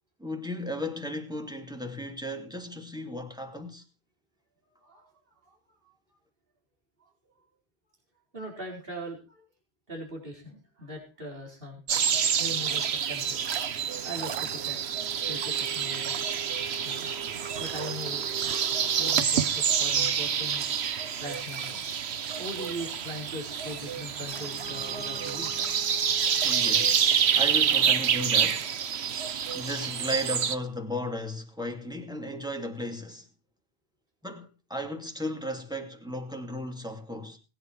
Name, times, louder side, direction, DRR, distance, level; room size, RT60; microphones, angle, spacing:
voice 1, 0.2-3.8 26.4-28.7 29.5-33.3 34.2-37.4, left 1 dB, 5° right, 2.5 m, -35 dB
voice 2, 4.7-5.1 5.4-5.6 5.8-5.9 7.0-7.1 8.3-9.4 9.9-11.8 12.4-13.4 14.0-14.8 15.3-16.3 16.8-17.1 17.6-18.2 19.0-20.6 21.2-21.8 22.4-25.6, equal, 60° right, 4.9 m, -40 dB
sound 1, 11.9-30.6, right 7 dB, 85° right, 1.2 m, -27 dB
Bowed string instrument, 24.2-28.9, right 1 dB, 40° right, 8.3 m, -47 dB
19.5 x 10.0 x 4.6 m
omnidirectional pair, 1.0 m